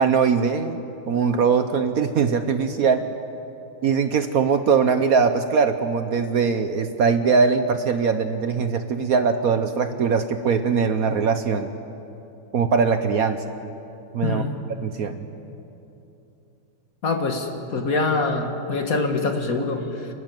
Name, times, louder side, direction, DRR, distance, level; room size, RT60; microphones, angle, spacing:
voice 1, 0.0-3.0 3.8-11.7 12.5-13.4 14.1-14.4 14.8-15.2, right 5 dB, 60° right, 8 dB, 1.1 m, -21 dB
voice 2, 14.2-14.6 17.0-20.1, left 3 dB, 50° left, 4 dB, 2.0 m, -24 dB
28.5 x 12.5 x 9.2 m, 2.9 s
omnidirectional pair, 2.0 m